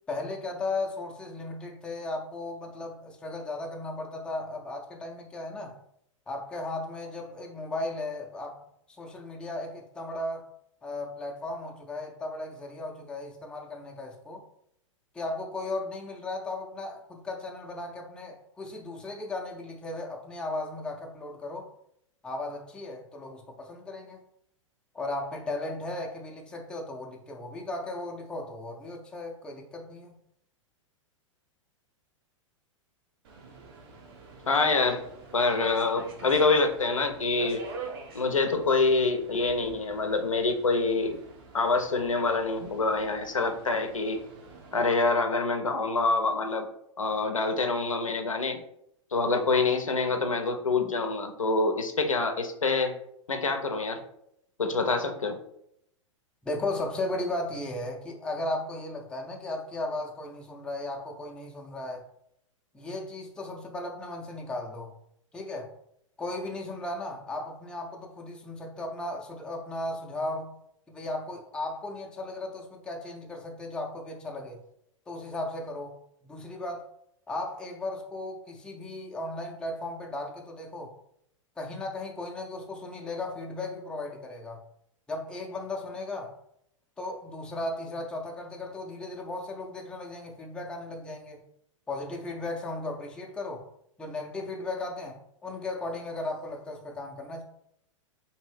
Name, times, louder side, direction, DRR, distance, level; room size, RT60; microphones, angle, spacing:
voice 1, 0.1-5.8 6.3-8.6 8.9-10.5 10.8-14.4 15.1-21.7 22.2-24.2 24.9-30.2 56.4-62.0 62.7-64.9 65.3-65.7 66.2-70.6 70.9-74.6 75.1-75.9 76.2-76.8 77.3-80.9 81.6-84.6 85.1-86.3 87.0-91.4 91.9-93.6 94.0-97.4, left 2 dB, 5° left, 0 dB, 0.4 m, -36 dB
Subway metro underground, 33.2-44.9, right 4 dB, 45° right, 0.6 m, -46 dB
voice 2, 34.5-35.0 35.3-37.6 38.1-41.2 41.5-44.2 44.7-46.7 47.0-48.6 49.1-52.9 53.3-54.0 54.6-55.4, left 3 dB, 80° left, 5 dB, 0.5 m, -26 dB
2.7 x 2.6 x 3.1 m, 0.74 s
figure-of-eight pair, 100°, 17 cm